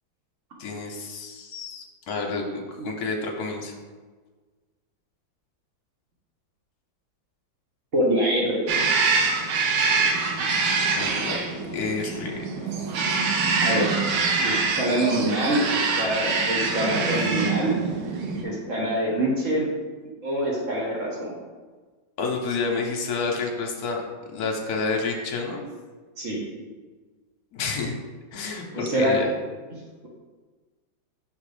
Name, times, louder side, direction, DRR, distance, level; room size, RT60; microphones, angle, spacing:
voice 1, 0.6-3.7 11.0-11.4 11.7-12.5 22.2-24.0 24.3-25.6 27.5-28.0 28.3-29.3, left 4 dB, 60° left, 2 dB, 1.1 m, -29 dB
voice 2, 7.9-8.6 13.6-13.9 14.4-17.7 18.4-19.7 20.2-21.3 26.2-26.5 28.7-29.2, right 1 dB, 45° right, -3 dB, 1.3 m, -25 dB
sound 1, 8.7-18.4, right 4 dB, 70° right, 1.2 m, -25 dB
5.7 x 3.7 x 4.9 m, 1.4 s
omnidirectional pair, 2.1 m